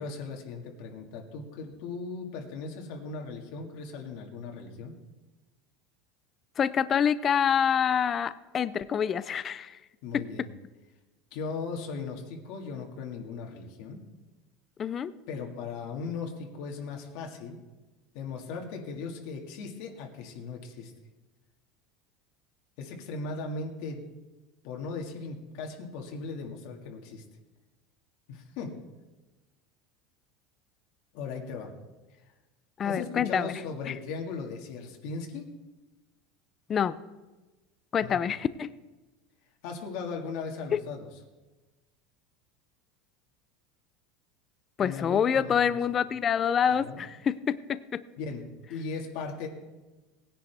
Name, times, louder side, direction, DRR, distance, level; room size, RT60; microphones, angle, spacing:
voice 1, 0.0-5.0 10.0-10.5 11.3-14.0 15.3-17.6 18.1-20.9 22.8-24.1 24.6-27.2 28.3-28.7 31.1-31.7 32.1-32.2 32.8-35.5 38.0-38.2 39.6-41.0 44.8-45.8 46.7-47.0 48.2-48.4 48.7-49.5, left 4 dB, 55° left, 1 dB, 1.8 m, -38 dB
voice 2, 6.6-9.8 10.1-10.5 14.8-15.1 32.8-33.5 33.9-34.0 36.7-37.0 37.9-38.7 44.8-48.0, left 8 dB, 20° left, 15 dB, 0.4 m, -27 dB
19.0 x 10.5 x 3.4 m, 1.1 s
supercardioid pair, 175°, 0 cm